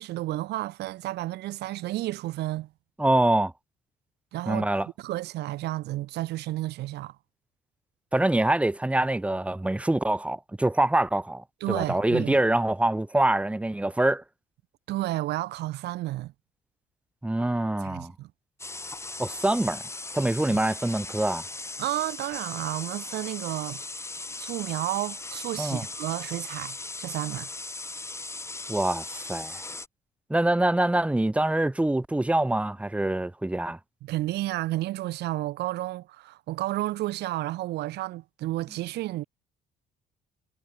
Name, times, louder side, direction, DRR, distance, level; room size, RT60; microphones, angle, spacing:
voice 1, 0.0-2.7 4.3-4.7 5.0-7.2 11.6-12.4 14.9-16.3 17.8-18.3 20.5-20.6 21.8-23.8 24.4-27.5 34.0-39.3, right 16 dB, 80° right, 5.0 m, -31 dB
voice 2, 3.0-3.5 4.5-4.9 8.1-14.2 17.2-18.1 19.2-19.8 20.1-21.4 25.6-25.9 28.7-29.6 30.3-33.8, right 1 dB, 5° right, 1.3 m, -25 dB
sound 1, 18.6-29.9, left 3 dB, 15° left, 6.9 m, -38 dB
cardioid pair, 110°, 17 cm